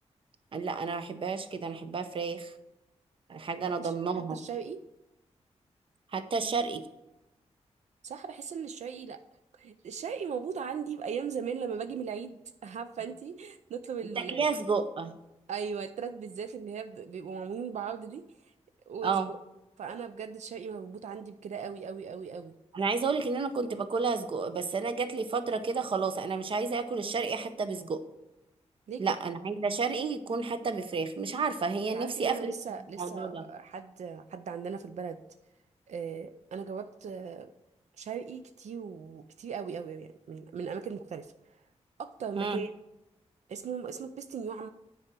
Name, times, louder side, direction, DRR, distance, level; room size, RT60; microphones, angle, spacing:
voice 1, 0.5-2.5 3.3-4.4 6.1-6.8 14.2-15.2 19.0-19.3 22.7-28.0 29.0-32.5 33.0-33.4 42.4-42.6, right 4 dB, 50° right, 10 dB, 0.7 m, -31 dB
voice 2, 4.3-4.8 8.0-9.2 9.6-14.5 15.5-18.3 18.9-19.4 19.8-22.6 28.9-29.1 31.9-35.2 35.9-37.5 38.0-41.6 42.0-42.7 43.5-44.7, right 6 dB, 80° right, 9 dB, 0.5 m, -38 dB
9.5 x 4.8 x 6.0 m, 0.92 s
wide cardioid pair, 160°, 12 cm